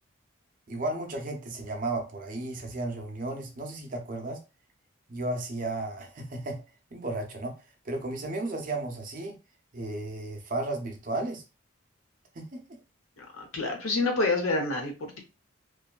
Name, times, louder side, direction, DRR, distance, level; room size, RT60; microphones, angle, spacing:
voice 1, 0.7-4.4 5.1-6.6 6.9-7.6 7.8-9.4 9.7-11.4 12.3-12.8, right 2 dB, 40° right, 3 dB, 0.5 m, -34 dB
voice 2, 13.2-15.2, left 3 dB, 90° left, 2 dB, 0.8 m, -28 dB
2.6 x 2.3 x 2.2 m, 0.29 s
head